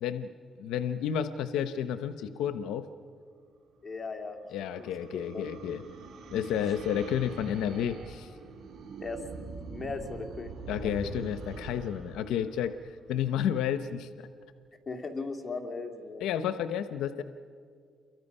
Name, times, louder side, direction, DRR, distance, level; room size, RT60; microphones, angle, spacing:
voice 1, 0.0-0.3 0.6-2.9 4.5-5.8 6.3-8.3 10.7-12.7 13.1-14.3 16.2-17.2, left 9 dB, 90° left, 11 dB, 0.7 m, -31 dB
voice 2, 3.8-4.4 4.8-4.9 5.3-5.4 9.0-11.1 14.9-16.2, left 3 dB, 30° left, 4 dB, 2.6 m, -38 dB
sound 1, 3.9-13.4, right 4 dB, 75° right, 3.9 m, -44 dB
28.5 x 23.0 x 5.5 m, 2.1 s
cardioid pair, 90°, 0 cm